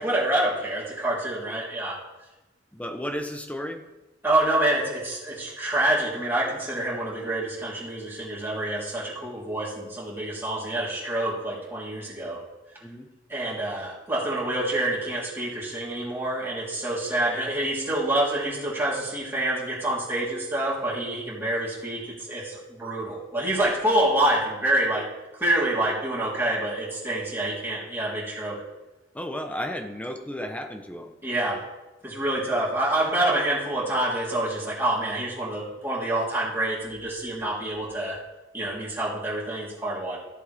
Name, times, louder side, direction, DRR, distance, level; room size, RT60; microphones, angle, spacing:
voice 1, 0.0-2.0 4.2-12.4 13.3-25.1 25.4-28.6 31.2-31.6 32.0-38.2 38.5-40.2, right 1 dB, 10° right, -8 dB, 3.6 m, -27 dB
voice 2, 2.7-3.8 12.8-13.1 29.1-31.1, equal, 5° left, 6 dB, 0.9 m, -33 dB
14.5 x 7.7 x 3.5 m, 1.0 s
head